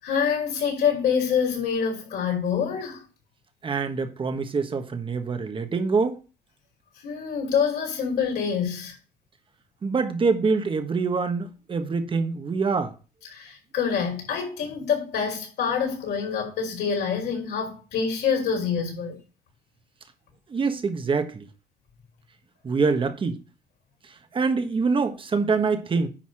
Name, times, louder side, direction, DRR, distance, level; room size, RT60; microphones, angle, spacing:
voice 1, 0.0-3.0 7.0-8.9 13.3-19.2, left 7 dB, 70° left, 5.2 m, -26 dB
voice 2, 3.6-6.2 9.8-12.9 20.5-21.5 22.6-23.4 24.3-26.1, right 4 dB, 30° right, 1.4 m, -25 dB
10.0 x 4.2 x 6.3 m
cardioid pair, 110°, 17 cm